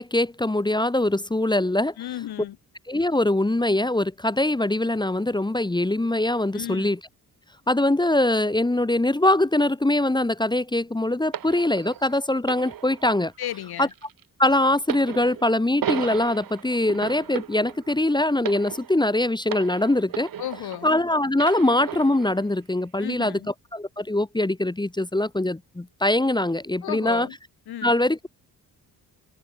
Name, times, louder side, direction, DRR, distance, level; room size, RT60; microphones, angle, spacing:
voice 1, 0.0-1.9 2.9-7.0 7.7-13.3 13.8-13.9 14.4-20.3 20.8-27.3 27.8-28.3, left 1 dB, 10° left, 1.0 m, -23 dB
voice 2, 2.0-2.6 6.5-6.9 13.4-13.9 20.4-20.9 23.0-23.5 26.8-27.3 27.7-27.9, left 12 dB, 80° left, 1.1 m, -33 dB
sound 1, 11.3-21.0 21.4-22.4 23.2-23.3, right 10 dB, 65° right, 1.1 m, -36 dB
cardioid pair, 80°, 38 cm